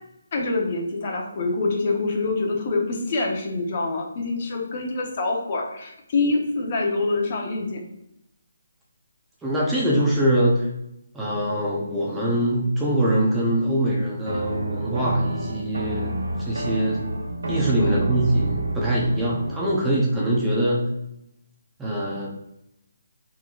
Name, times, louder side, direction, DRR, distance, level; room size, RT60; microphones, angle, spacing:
voice 1, 0.3-7.8 17.7-18.1, left 3 dB, 40° left, 1 dB, 0.9 m, -25 dB
voice 2, 9.4-10.7 11.1-17.0 17.5-20.8 21.8-22.3, right 1 dB, 5° right, -6 dB, 0.7 m, -23 dB
sound 1, 14.3-19.8, right 2 dB, 85° right, 0.9 m, -28 dB
4.6 x 3.9 x 2.4 m, 0.83 s
hypercardioid pair, 160°, 0 cm